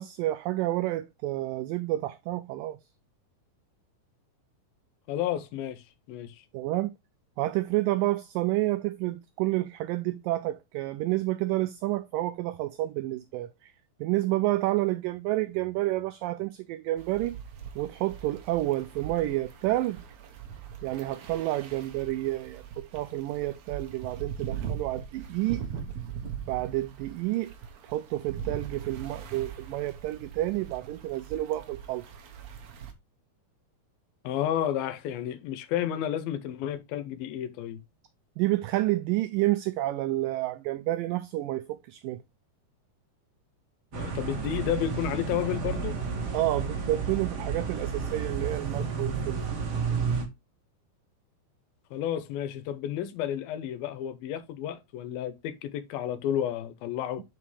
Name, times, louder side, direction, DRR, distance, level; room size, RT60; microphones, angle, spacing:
voice 1, 0.0-2.8 6.5-6.9 7.4-13.7 14.0-17.4 17.8-20.0 20.8-25.6 26.5-27.5 27.8-32.0 38.4-42.2 46.3-49.4, right 16 dB, 85° right, 1.9 m, -29 dB
voice 2, 5.1-6.4 34.2-37.8 43.9-46.0 51.9-57.2, left 11 dB, 75° left, 2.5 m, -31 dB
sound 1, 17.0-32.9, right 8 dB, 65° right, 1.7 m, -41 dB
sound 2, 43.9-50.3, right 5 dB, 45° right, 2.3 m, -31 dB
7.6 x 5.9 x 3.2 m
omnidirectional pair, 4.4 m